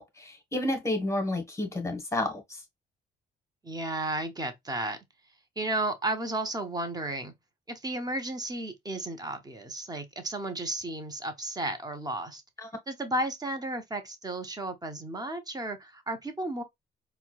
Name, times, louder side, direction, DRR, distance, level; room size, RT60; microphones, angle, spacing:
voice 1, 0.0-2.6 12.6-12.7, left 1 dB, 15° left, 1.1 m, -31 dB
voice 2, 3.6-5.0 5.6-7.3 7.7-12.4 12.9-16.6, right 2 dB, 20° right, 0.9 m, -33 dB
4.3 x 2.2 x 2.3 m
cardioid pair, 90°, 20 cm